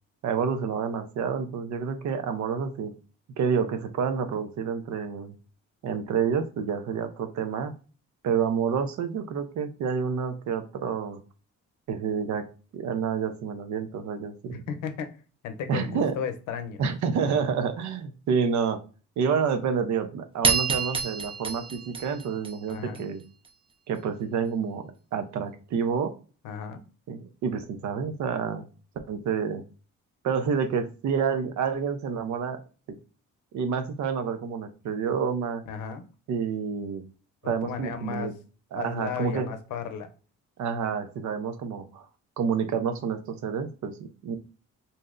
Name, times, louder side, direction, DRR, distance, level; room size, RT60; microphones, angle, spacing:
voice 1, 0.2-3.0 3.4-5.3 5.8-7.8 8.2-11.2 11.9-12.5 12.7-14.6 15.7-16.2 16.8-18.8 19.2-23.2 23.9-26.1 27.1-28.7 29.1-29.6 30.2-32.6 32.9-33.0 33.5-35.6 36.3-37.0 37.4-38.3 38.7-39.5 40.6-42.1 42.4-44.4, right 6 dB, 70° right, 8 dB, 0.6 m, -28 dB
voice 2, 14.5-15.1 15.4-16.8 22.7-23.1 26.4-26.8 35.7-36.0 37.4-38.3 38.7-40.1, left 7 dB, 85° left, 8 dB, 0.6 m, -35 dB
sound 1, 20.4-23.0, right 5 dB, 20° right, 0.5 m, -28 dB
2.7 x 2.0 x 3.6 m, 0.36 s
cardioid pair, 90°, 30 cm